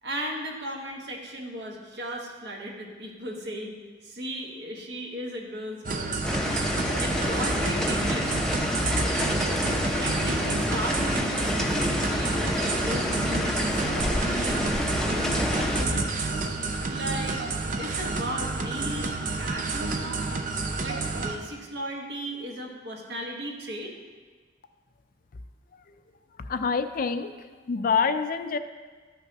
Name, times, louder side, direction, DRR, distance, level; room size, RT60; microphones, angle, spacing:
voice 1, 0.0-3.8 4.0-6.2 7.0-8.4 9.1-14.7 15.0-16.1 16.9-17.4 17.7-20.2 20.8-24.0, equal, 60° right, 0 dB, 1.4 m, -36 dB
sound 1, 5.8-21.3, right 3 dB, 45° right, 0.6 m, -30 dB
sound 2, 6.2-15.8, left 1 dB, 5° left, 0.6 m, -28 dB
voice 2, 26.5-28.6, left 5 dB, 50° left, 9 dB, 0.4 m, -26 dB
13.5 x 5.9 x 2.9 m, 1.4 s
head